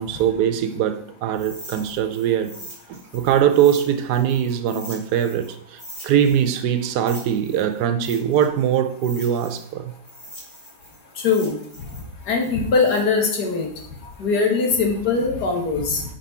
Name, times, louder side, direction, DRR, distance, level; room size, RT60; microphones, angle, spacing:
voice 1, 0.0-2.6 2.9-9.9, right 9 dB, 80° right, 1.2 m, -21 dB
sound 1, 1.3-5.5 5.8-9.7 10.0-14.1, equal, 20° left, 1.9 m, -42 dB
voice 2, 11.2-11.6 12.3-13.7 14.2-16.0, left 4 dB, 80° left, 1.8 m, -21 dB
5.3 x 4.9 x 4.3 m
omnidirectional pair, 1.7 m